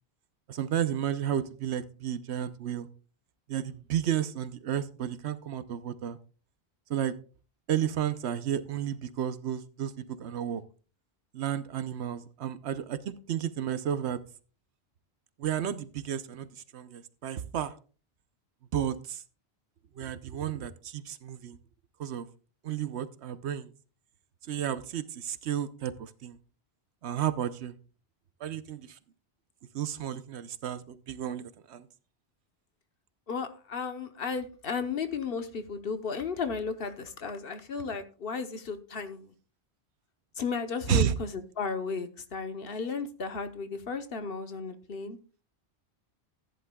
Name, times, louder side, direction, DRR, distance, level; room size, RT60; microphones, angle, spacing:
voice 1, 0.5-2.9 3.5-6.2 6.9-7.2 7.7-10.6 11.3-14.2 15.4-16.5 16.7-17.7 18.7-19.2 20.0-21.6 22.0-22.3 22.6-23.7 24.5-26.4 27.0-27.7 28.4-29.0 29.7-31.9 40.9-41.2, right 9 dB, 85° right, 13 dB, 1.0 m, -32 dB
voice 2, 33.3-39.3 40.3-45.2, left 5 dB, 60° left, 9 dB, 1.1 m, -34 dB
14.5 x 10.5 x 2.3 m, 0.38 s
omnidirectional pair, 1.1 m